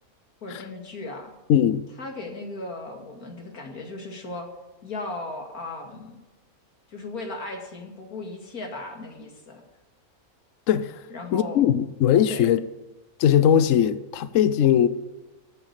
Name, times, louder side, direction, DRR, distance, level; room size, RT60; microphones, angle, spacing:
voice 1, 0.4-1.3 2.0-4.5 4.8-6.2 6.9-9.6 11.1-11.6 12.3-12.4, left 2 dB, 85° left, 2.8 m, -36 dB
voice 2, 1.5-1.9 10.7-11.0 11.3-12.6 13.2-14.9, left 9 dB, 65° left, 1.0 m, -20 dB
14.0 x 7.7 x 8.2 m
omnidirectional pair, 1.5 m